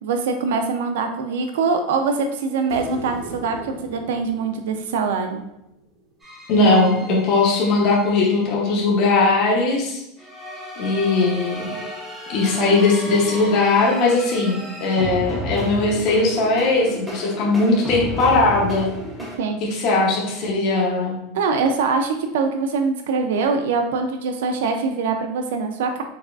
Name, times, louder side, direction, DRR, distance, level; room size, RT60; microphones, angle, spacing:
voice 1, 0.0-5.4 19.4-19.6 21.3-26.0, right 4 dB, 85° right, 6 dB, 0.4 m, -23 dB
sound 1, 2.7-6.0 8.5-8.6, right 2 dB, 25° right, 0.9 m, -39 dB
sound 2, 6.2-8.5 10.2-19.4, equal, 5° right, 0.6 m, -33 dB
voice 2, 6.5-10.0 10.8-11.7 12.3-18.9 19.7-21.1, left 3 dB, 40° left, -3 dB, 0.7 m, -19 dB
4.7 x 2.4 x 2.3 m, 0.86 s
supercardioid pair, 175°, 0 cm